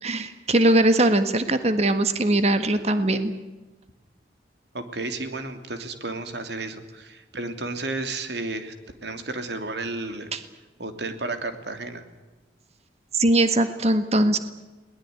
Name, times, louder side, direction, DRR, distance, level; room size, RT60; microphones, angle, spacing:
voice 1, 0.0-3.3 10.3-10.4 13.1-14.4, right 1 dB, 35° right, 9 dB, 1.6 m, -21 dB
voice 2, 4.7-8.7 9.0-10.3 10.8-12.0, right 2 dB, 70° right, 7 dB, 3.0 m, -32 dB
22.5 x 19.5 x 9.6 m, 1.1 s
head